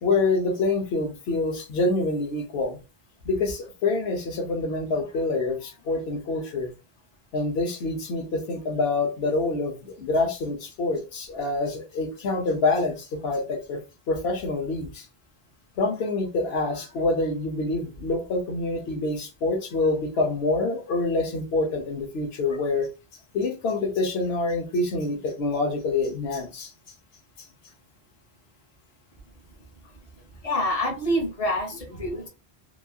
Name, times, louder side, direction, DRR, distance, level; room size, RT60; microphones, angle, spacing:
voice 1, 0.0-2.8 3.3-6.7 7.3-13.8 14.1-15.1 15.8-22.9 23.3-26.7, left 3 dB, 90° left, 0.9 m, -26 dB
voice 2, 30.4-32.3, equal, 35° left, 1.0 m, -26 dB
3.0 x 2.3 x 2.2 m
omnidirectional pair, 1.0 m